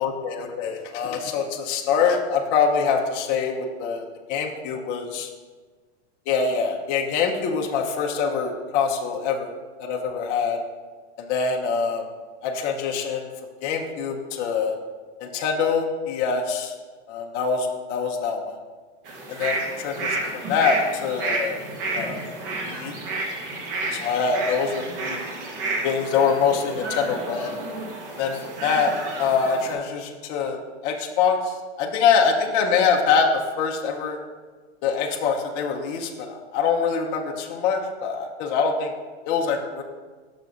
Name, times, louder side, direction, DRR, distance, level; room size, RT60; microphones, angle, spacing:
voice 1, 0.0-5.3 6.3-9.5 9.8-10.6 11.2-12.0 12.4-13.3 13.6-14.7 15.2-16.7 17.1-18.6 19.3-21.6 21.9-22.3 22.6-23.0 23.9-25.2 25.8-27.5 28.2-28.9 29.2-30.6 30.8-34.2 34.8-38.9 39.3-39.8, left 5 dB, 25° left, 1 dB, 0.5 m, -24 dB
sound 1, 19.1-29.7, right 2 dB, 50° right, 1.2 m, -31 dB
5.8 x 4.0 x 4.9 m, 1.4 s
supercardioid pair, 155°, 35 cm